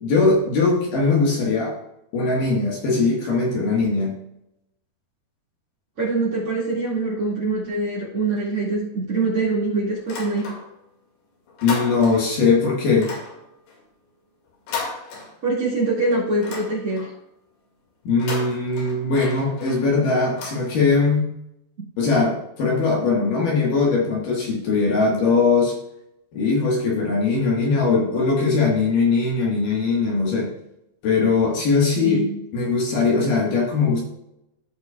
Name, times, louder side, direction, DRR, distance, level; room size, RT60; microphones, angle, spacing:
voice 1, 0.0-1.8 2.1-4.2 11.6-13.1 18.0-21.3 22.0-25.8 26.3-30.5 31.0-32.2 32.5-34.0, left 4 dB, 60° left, -3 dB, 2.8 m, -20 dB
voice 2, 6.0-10.6 15.4-17.1 32.0-32.4, right 3 dB, 40° right, -5 dB, 2.4 m, -24 dB
sound 1, 10.0-10.9 11.2-12.4 12.9-15.8 16.1-17.2 18.0-21.2, left 4 dB, 85° left, 4.1 m, -35 dB
14.5 x 5.6 x 2.3 m, 0.85 s
omnidirectional pair, 4.7 m